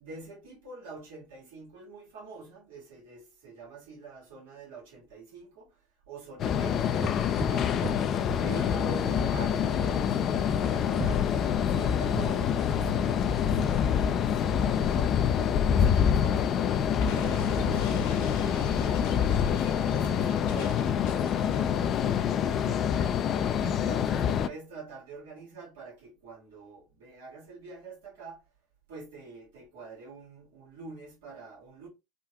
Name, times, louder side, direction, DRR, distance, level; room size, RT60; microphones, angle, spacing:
voice 1, 0.0-7.8 8.4-15.2 15.8-23.0 23.6-28.5 28.9-31.9, right 4 dB, 80° right, 1.5 m, -46 dB
sound 1, 6.4-24.5, left 8 dB, 50° left, 0.4 m, -26 dB
sound 2, 6.7-15.5, right 5 dB, 40° right, 0.6 m, -42 dB
Explosion, 17.0-21.8, equal, 75° left, 1.1 m, -40 dB
3.6 x 2.2 x 2.8 m
hypercardioid pair, 75°, 0 cm